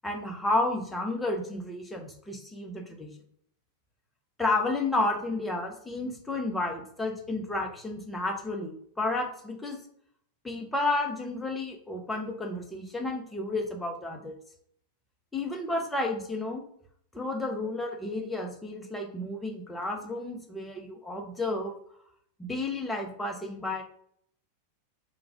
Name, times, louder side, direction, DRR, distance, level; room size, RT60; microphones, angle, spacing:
voice 1, 0.0-3.1 4.4-9.8 10.4-14.4 15.3-16.6 17.1-21.7 22.4-23.8, left 2 dB, 10° left, 1 dB, 0.7 m, -31 dB
3.4 x 2.4 x 3.4 m, 0.66 s
figure-of-eight pair, 90°, 0 cm